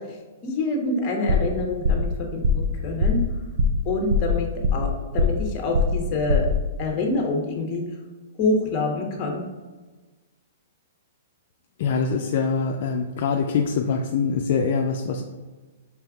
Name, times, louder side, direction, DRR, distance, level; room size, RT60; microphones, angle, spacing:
voice 1, 0.4-3.2 3.8-6.5 6.8-7.8 8.4-9.4, left 2 dB, 30° left, 1 dB, 0.8 m, -26 dB
sound 1, 1.3-1.6 1.8-2.1 2.4-2.7 3.0-3.3 3.6-3.8 4.1-4.9 5.2-5.5 5.7-6.0 6.3-6.6, left 2 dB, 60° right, 0.4 m, -21 dB
voice 2, 11.8-15.2, left 5 dB, 55° left, 2 dB, 0.3 m, -24 dB
4.5 x 3.4 x 2.3 m, 1.3 s
hypercardioid pair, 150°, 0 cm